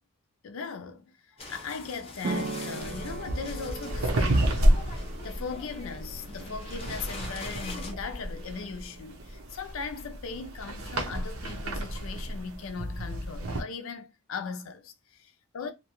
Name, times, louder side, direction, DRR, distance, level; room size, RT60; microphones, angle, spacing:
voice 1, 0.4-5.0 5.2-15.7, left 5 dB, 70° left, 0.5 m, -39 dB
sound 1, 1.4-7.9, left 3 dB, 25° left, 0.6 m, -44 dB
sound 2, 2.2-9.5, right 2 dB, 40° right, 0.4 m, -40 dB
sound 3, 2.8-13.6, right 1 dB, 80° right, 0.7 m, -30 dB
2.7 x 2.2 x 2.9 m
head